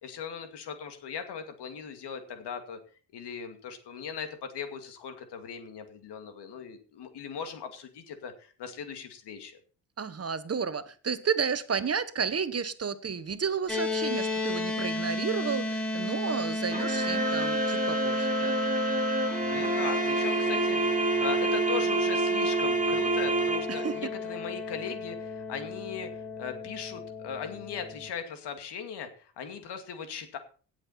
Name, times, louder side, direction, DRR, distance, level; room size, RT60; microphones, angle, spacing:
voice 1, 0.0-2.8 3.1-9.6 19.5-30.4, left 7 dB, 70° left, 7 dB, 2.4 m, -39 dB
voice 2, 10.0-18.5 23.7-24.0, right 6 dB, 35° right, 13 dB, 1.2 m, -32 dB
sound 1, 13.7-28.1, left 2 dB, 5° left, 4.9 m, -34 dB
sound 2, 16.7-24.0, right 2 dB, 20° right, 2.2 m, -28 dB
17.0 x 7.6 x 4.3 m, 0.39 s
supercardioid pair, 60°, 42 cm